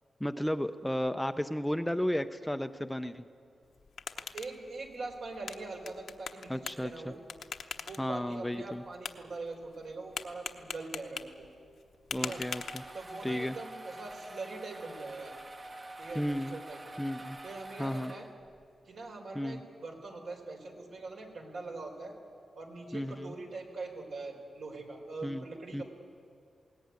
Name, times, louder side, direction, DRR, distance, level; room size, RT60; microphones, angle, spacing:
voice 1, 0.2-3.2 6.5-7.1 8.0-8.8 12.1-12.8 13.2-13.6 16.2-16.6 17.0-17.4 17.8-18.1 19.3-19.6 22.9-23.3 25.2-25.4 25.7-25.8, equal, 5° left, 9 dB, 0.6 m, -33 dB
sound 1, 3.6-13.3, left 6 dB, 75° left, 1.0 m, -44 dB
voice 2, 4.2-7.2 7.9-11.5 12.1-12.4 12.9-15.3 16.0-16.8 17.4-18.3 18.9-22.1 22.6-25.8, right 3 dB, 65° right, 2 dB, 4.1 m, -43 dB
sound 2, 11.9-18.6, right 2 dB, 30° right, 1.1 m, -47 dB
21.0 x 18.5 x 9.5 m, 2.4 s
wide cardioid pair, 125°, 0 cm